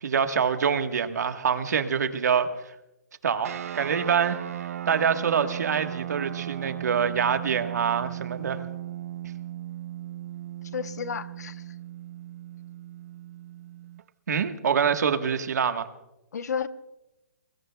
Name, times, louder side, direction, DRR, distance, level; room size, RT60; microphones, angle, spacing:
voice 1, 0.0-2.5 3.2-4.4 4.9-8.6 14.3-15.9, right 7 dB, 85° right, 8 dB, 1.3 m, -25 dB
sound 1, 3.4-14.1, right 12 dB, 60° right, 0.6 m, -37 dB
voice 2, 10.7-11.7 16.3-16.7, left 7 dB, 90° left, 12 dB, 0.9 m, -32 dB
27.5 x 21.5 x 2.3 m, 0.94 s
hypercardioid pair, 170°, 9 cm